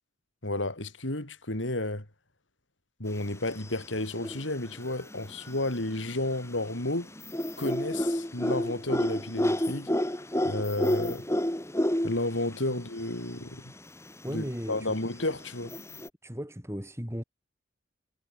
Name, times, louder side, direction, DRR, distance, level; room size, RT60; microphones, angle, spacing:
voice 1, 0.4-2.1 3.0-7.1 7.6-9.9 10.4-11.3 12.0-13.7 14.3-15.7, left 1 dB, 85° left, 4.9 m, -32 dB
sound 1, 3.3-3.9 4.1-6.2 6.6-12.6 12.8-12.9 13.1-13.2 13.8-16.1, left 1 dB, 15° left, 2.2 m, -30 dB
voice 2, 14.2-15.0 16.2-17.2, equal, 15° right, 4.4 m, -36 dB
head